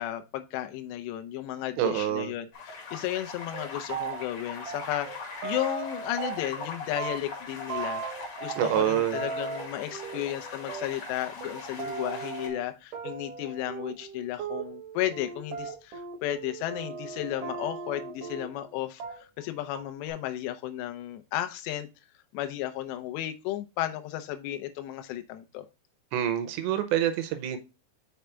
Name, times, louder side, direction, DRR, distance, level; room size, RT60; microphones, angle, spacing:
voice 1, 0.0-8.0 8.4-21.9 22.3-25.7, left 13 dB, 80° left, 2.9 m, -34 dB
voice 2, 1.8-2.3 8.6-9.2 26.1-27.6, right 11 dB, 80° right, 2.9 m, -26 dB
sound 1, 2.5-12.5, left 4 dB, 45° left, 2.5 m, -41 dB
sound 2, 3.2-3.3 3.5-4.4 4.7-6.7 7.0-18.7 19.0-19.5 19.7-20.1, right 6 dB, 60° right, 2.5 m, -38 dB
6.3 x 5.6 x 3.3 m
omnidirectional pair, 5.2 m